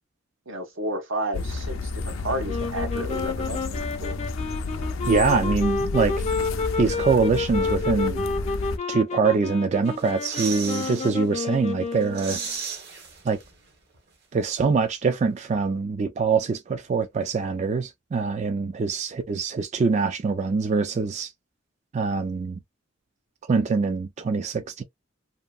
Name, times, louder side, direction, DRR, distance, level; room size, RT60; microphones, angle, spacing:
voice 1, 0.5-4.2, right 1 dB, 85° right, 1.1 m, -32 dB
sound 1, 1.3-8.8, left 3 dB, 85° left, 0.5 m, -31 dB
sound 2, 2.4-12.5, left 4 dB, 35° left, 0.4 m, -30 dB
voice 2, 5.1-6.1 6.8-8.2 8.9-12.4 13.2-13.4 14.3-21.3 21.9-22.6 23.5-24.8, right 4 dB, 35° right, 0.3 m, -24 dB
sound 3, 9.9-11.2 11.5-11.6 11.9-13.7 14.0-14.1, right 6 dB, 55° right, 1.1 m, -35 dB
2.7 x 2.6 x 2.3 m
head